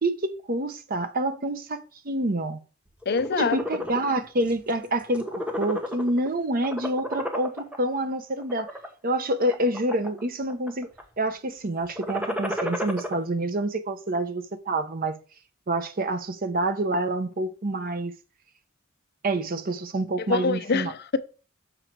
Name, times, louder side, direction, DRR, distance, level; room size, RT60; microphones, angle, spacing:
voice 1, 0.0-2.6 3.4-8.7 9.0-10.9 11.2-15.2 15.7-18.1 19.2-20.9, right 1 dB, 45° right, 0.8 m, -27 dB
sound 1, 3.0-4.0 4.5-4.7 5.0-6.3 6.6-7.8 8.4-8.9 9.4-10.2 10.5-11.0 11.9-13.1, left 1 dB, 5° right, 1.1 m, -31 dB
voice 2, 3.1-3.6 20.2-21.2, left 4 dB, 55° left, 0.6 m, -25 dB
6.5 x 6.1 x 4.6 m
head